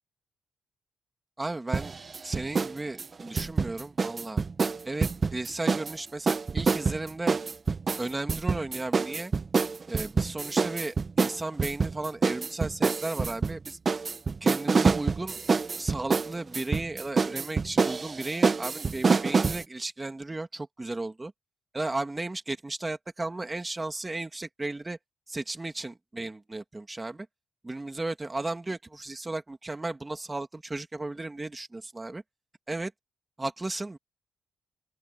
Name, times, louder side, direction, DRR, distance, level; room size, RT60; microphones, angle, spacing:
voice 1, 1.4-1.9 2.2-4.4 4.8-7.4 8.0-9.3 9.9-13.8 14.4-15.4 15.7-21.3 21.7-25.0 25.3-27.3 27.6-32.2 32.7-32.9 33.4-34.0, right 2 dB, 15° right, 2.2 m, -35 dB
sound 1, 1.7-2.7 3.0-5.9 6.3-19.6, right 4 dB, 35° right, 1.1 m, -26 dB
open air
cardioid pair, 110°, 0 cm